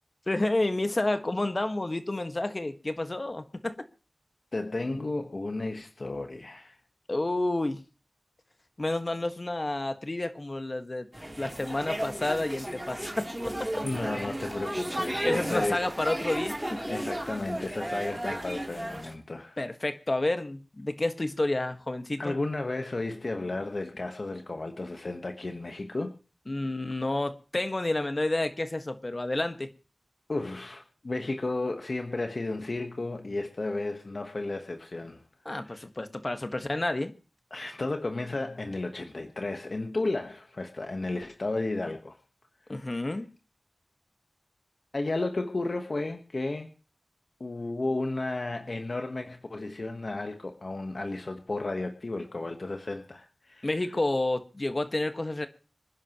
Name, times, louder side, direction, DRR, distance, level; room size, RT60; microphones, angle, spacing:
voice 1, 0.3-3.7 7.1-7.8 8.8-11.1 11.4-13.4 15.2-16.8 19.6-22.4 26.5-29.7 35.4-37.1 42.7-43.3 53.6-55.5, left 2 dB, 45° left, 1.5 m, -30 dB
voice 2, 4.5-6.8 13.8-15.8 16.9-19.6 22.2-26.1 30.3-35.2 35.6-35.8 37.5-42.2 42.8-43.1 44.9-46.7 47.4-53.7, left 2 dB, 60° left, 1.2 m, -33 dB
sound 1, 11.1-19.2, right 1 dB, 15° right, 3.1 m, -34 dB
26.0 x 10.5 x 3.0 m
wide cardioid pair, 45°, 0 cm